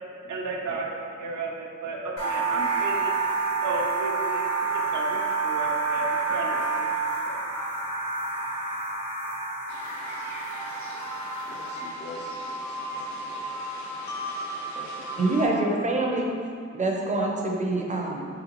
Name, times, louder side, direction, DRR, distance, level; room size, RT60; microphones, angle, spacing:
voice 1, 0.3-3.1 3.6-7.4, right 2 dB, 85° right, 0 dB, 0.6 m, -34 dB
sound 1, 2.2-11.9, right 4 dB, 60° left, 1.3 m, -28 dB
sound 2, 9.7-15.5, equal, 75° left, 0.7 m, -36 dB
voice 2, 11.4-13.7 14.7-15.6, left 2 dB, 40° left, -1 dB, 0.5 m, -45 dB
voice 3, 15.2-16.3 16.7-18.3, right 2 dB, 25° right, -1 dB, 0.5 m, -25 dB
4.4 x 3.8 x 2.9 m, 2.4 s
wide cardioid pair, 150°, 29 cm